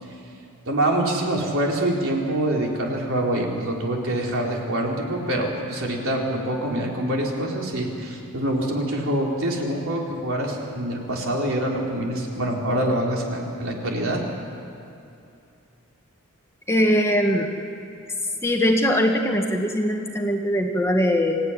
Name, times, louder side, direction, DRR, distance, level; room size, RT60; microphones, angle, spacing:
voice 1, 0.7-14.2, right 1 dB, 65° right, -1 dB, 4.2 m, -25 dB
voice 2, 16.7-17.5 18.4-21.4, equal, 10° left, 2 dB, 1.5 m, -21 dB
25.5 x 15.5 x 10.0 m, 2.7 s
head